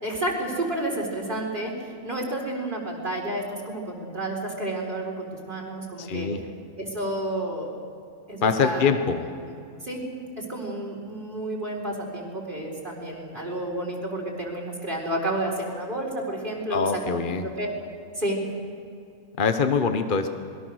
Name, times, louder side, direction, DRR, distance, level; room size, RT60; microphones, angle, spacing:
voice 1, 0.0-6.3 6.8-7.7 8.3-8.9 9.2-9.5 9.8-10.1 10.4-17.7 18.1-18.4, right 1 dB, 40° right, -1 dB, 4.3 m, -31 dB
voice 2, 6.0-6.4 8.4-9.2 16.7-17.5 19.4-20.3, left 5 dB, 40° left, 7 dB, 1.1 m, -24 dB
26.5 x 21.5 x 6.4 m, 2.5 s
omnidirectional pair, 1.3 m